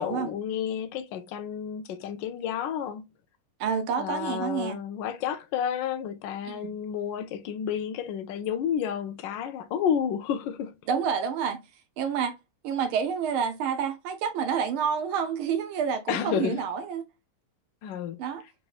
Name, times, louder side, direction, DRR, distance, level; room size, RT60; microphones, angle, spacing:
voice 1, 0.0-3.1 4.0-10.8 16.1-16.6 17.8-18.2, left 8 dB, 75° left, 1.0 m, -31 dB
voice 2, 3.6-4.8 6.4-6.7 10.9-11.6 12.0-12.4 12.6-17.0 18.2-18.4, right 7 dB, 75° right, 1.4 m, -28 dB
4.0 x 3.4 x 2.3 m
omnidirectional pair, 2.4 m